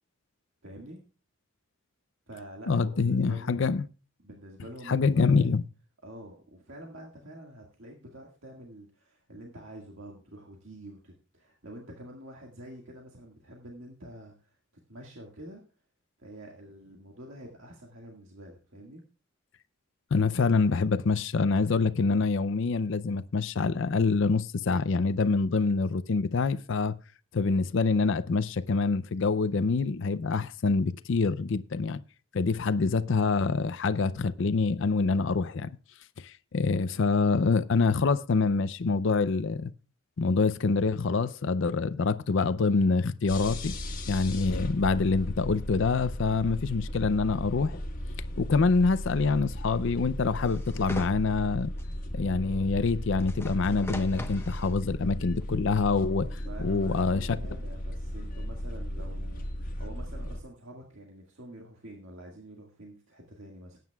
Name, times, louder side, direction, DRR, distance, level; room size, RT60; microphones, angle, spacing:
voice 1, 0.6-1.0 2.3-3.6 4.2-5.5 6.0-14.6 14.9-15.6 16.2-19.0 42.8-43.0 56.2-63.8, right 1 dB, 70° right, 1.9 m, -47 dB
voice 2, 2.7-3.9 4.9-5.6 20.1-26.9 27.3-32.0 32.3-35.7 36.2-39.7 40.2-43.8 44.1-47.8 48.4-51.7 52.1-56.3 56.6-57.4, left 4 dB, 60° left, 0.5 m, -26 dB
sound 1, 43.3-60.4, equal, 40° left, 1.6 m, -36 dB
sound 2, 50.4-51.1 51.8-51.9 53.2-54.7 55.4-55.5, left 1 dB, 10° left, 1.0 m, -40 dB
19.5 x 9.2 x 2.3 m
head